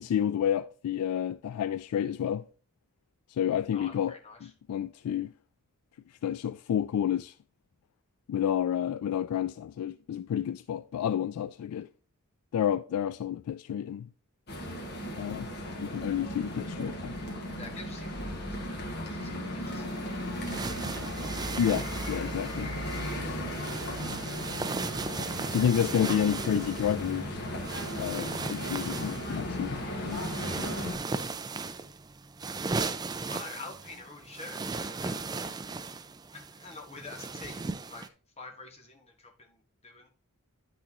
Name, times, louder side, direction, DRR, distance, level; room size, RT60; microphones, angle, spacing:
voice 1, 0.0-2.4 3.4-5.3 6.2-7.3 8.3-11.9 12.5-14.1 15.2-15.5 15.8-17.2 21.6-22.7 25.5-27.4 28.0-30.2, left 9 dB, 80° left, 0.3 m, -30 dB
voice 2, 3.7-4.5 17.6-21.0 33.3-35.6 36.3-40.1, left 3 dB, 30° left, 1.5 m, -47 dB
sound 1, 14.5-30.9, equal, 50° left, 1.7 m, -36 dB
sound 2, 19.6-38.1, right 4 dB, 20° right, 0.4 m, -37 dB
10.0 x 6.1 x 3.0 m
head